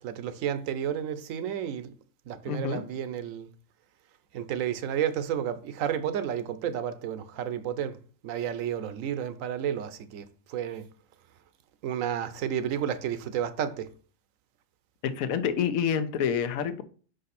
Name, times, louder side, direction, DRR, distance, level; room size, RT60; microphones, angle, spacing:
voice 1, 0.0-1.9 2.3-3.5 4.3-8.0 8.2-10.8 11.8-13.9, right 9 dB, 75° right, 1.0 m, -31 dB
voice 2, 2.5-2.8 15.0-16.8, left 7 dB, 85° left, 1.1 m, -28 dB
5.4 x 5.1 x 4.1 m
omnidirectional pair, 1.4 m